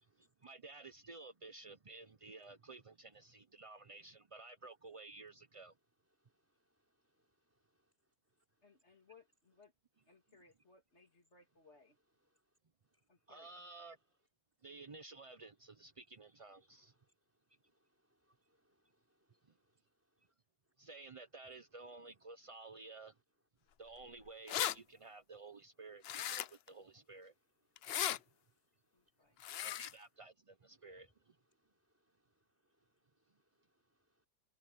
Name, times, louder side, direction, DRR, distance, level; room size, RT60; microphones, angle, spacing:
voice 1, 0.2-5.7 13.3-14.0 14.6-16.9 19.5-19.6 20.8-23.1 23.8-27.3 29.6-31.4, right 3 dB, 55° right, 0.3 m, -53 dB
voice 2, 6.1-9.1 12.2-12.6 12.8-13.3 16.7-20.3 23.6-23.7 27.7-29.4 30.7-34.3, equal, 10° right, 5.6 m, -82 dB
voice 3, 8.6-9.7 10.1-12.0 13.1-13.6 28.9-29.4, left 4 dB, 45° left, 2.7 m, -65 dB
sound 1, 24.0-24.1 24.3-24.7 26.0-26.7 27.8-28.2 29.4-29.9, left 11 dB, 70° left, 0.6 m, -37 dB
omnidirectional pair, 1.7 m